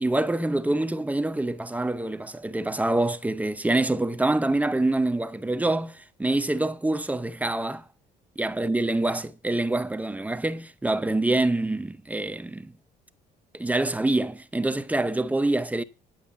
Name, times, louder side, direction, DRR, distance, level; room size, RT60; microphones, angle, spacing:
voice 1, 0.0-7.8 8.4-12.7 13.5-15.8, right 2 dB, 10° right, 0.7 m, -26 dB
10.5 x 6.4 x 6.8 m
cardioid pair, 110°, 17 cm